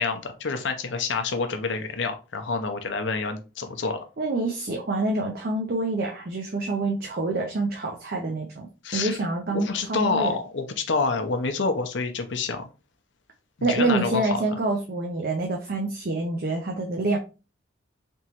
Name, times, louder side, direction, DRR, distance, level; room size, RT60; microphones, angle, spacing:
voice 1, 0.0-4.0 8.8-9.2 9.5-12.7 13.6-14.4, left 4 dB, 70° left, 6 dB, 0.6 m, -27 dB
voice 2, 4.2-10.3 13.6-17.2, right 2 dB, 50° right, 1 dB, 0.5 m, -27 dB
3.5 x 3.0 x 2.9 m, 0.32 s
head